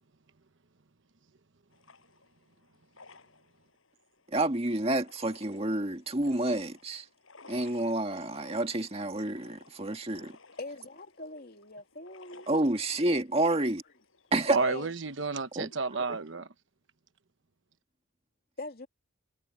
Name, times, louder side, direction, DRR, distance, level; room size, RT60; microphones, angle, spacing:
sound 1, 1.7-16.3, left 3 dB, 80° left, 7.9 m, -57 dB
voice 1, 4.3-7.0 7.5-10.3 12.5-13.8 14.3-14.6 15.6-15.7 16.1-16.2, right 2 dB, 30° right, 1.9 m, -29 dB
voice 2, 10.6-12.5 14.6-14.9 18.6-18.9, left 2 dB, 50° left, 2.7 m, -42 dB
voice 3, 14.5-16.5, right 4 dB, 65° right, 1.0 m, -31 dB
head